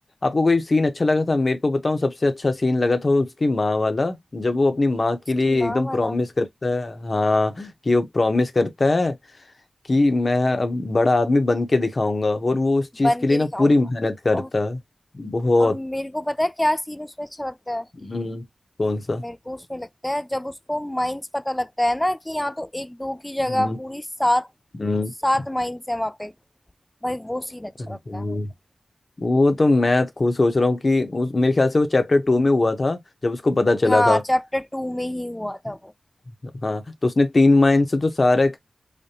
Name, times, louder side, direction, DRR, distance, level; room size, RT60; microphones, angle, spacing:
voice 1, 0.2-9.2 9.9-14.8 15.1-15.8 18.0-18.4 18.8-19.2 23.5-23.8 24.8-25.1 27.9-28.5 29.2-34.2 36.6-38.6, left 2 dB, 45° left, 0.8 m, -21 dB
voice 2, 5.4-6.2 13.0-13.7 14.3-14.5 15.6-17.9 19.2-24.5 25.2-26.3 27.0-28.4 33.8-35.9, left 1 dB, 10° left, 0.3 m, -26 dB
5.1 x 2.2 x 2.7 m
wide cardioid pair, 70°, 0 cm